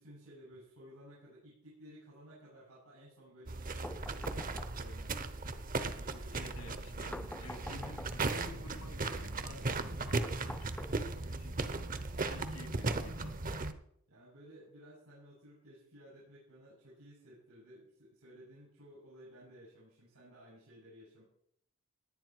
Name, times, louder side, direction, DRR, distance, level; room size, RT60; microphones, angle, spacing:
voice 1, 0.0-5.3 5.7-6.6 6.9-7.3 14.1-21.2, equal, 85° right, -8 dB, 7.6 m, -56 dB
sound 1, 3.5-13.7, right 3 dB, 40° right, 0.9 m, -37 dB
sound 2, 3.8-5.1 7.1-8.4 10.2-11.4, left 1 dB, 5° left, 0.7 m, -47 dB
voice 2, 6.3-11.6 12.2-13.7, left 2 dB, 85° left, 5 dB, 2.9 m, -51 dB
19.0 x 10.0 x 4.6 m, 0.70 s
head